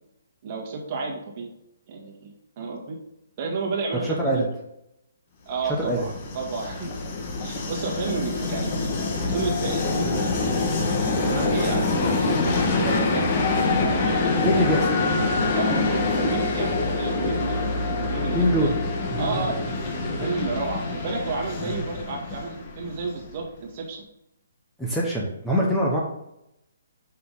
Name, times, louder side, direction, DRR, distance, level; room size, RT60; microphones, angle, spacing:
voice 1, 0.4-1.5 1.9-3.0 3.4-4.4 5.5-6.1 6.3-7.0 7.4-10.6 11.2-12.4 12.7-14.7 15.5-18.7 19.2-19.6 20.2-24.0, right 4 dB, 40° right, -1 dB, 1.9 m, -31 dB
voice 2, 4.0-4.5 5.6-6.1 14.4-14.9 18.3-18.7 19.1-19.5 21.6-21.8 24.8-26.0, equal, ahead, -5 dB, 1.2 m, -24 dB
Train, 5.7-23.4, left 3 dB, 35° left, 1.4 m, -25 dB
5.8 x 5.7 x 4.0 m, 0.82 s
figure-of-eight pair, 135°, 0 cm